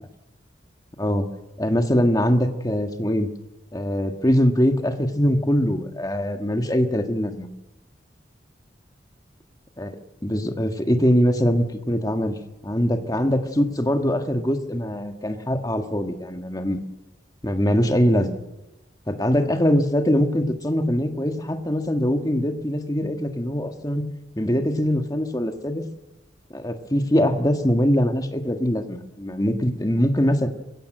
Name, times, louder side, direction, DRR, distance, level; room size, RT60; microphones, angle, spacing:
voice 1, 1.6-3.3 3.7-7.5 9.8-10.0 10.2-12.4 12.6-16.8 17.4-18.4 19.1-24.0 24.4-25.9 26.5-30.5, equal, 20° left, 6 dB, 1.7 m, -22 dB
24.0 x 16.0 x 7.8 m, 1.0 s
head